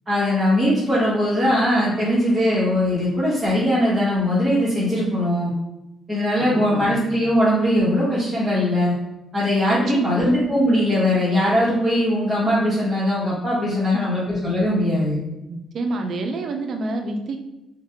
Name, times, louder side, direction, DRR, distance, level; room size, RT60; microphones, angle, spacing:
voice 1, 0.1-5.5 6.1-8.9 9.3-15.2, left 1 dB, 20° right, -10 dB, 1.0 m, -20 dB
voice 2, 6.4-7.0 9.9-10.3 13.8-14.2 15.5-17.5, right 2 dB, 60° right, 4 dB, 0.4 m, -28 dB
2.5 x 2.1 x 2.8 m, 0.94 s
cardioid pair, 90°, 0 cm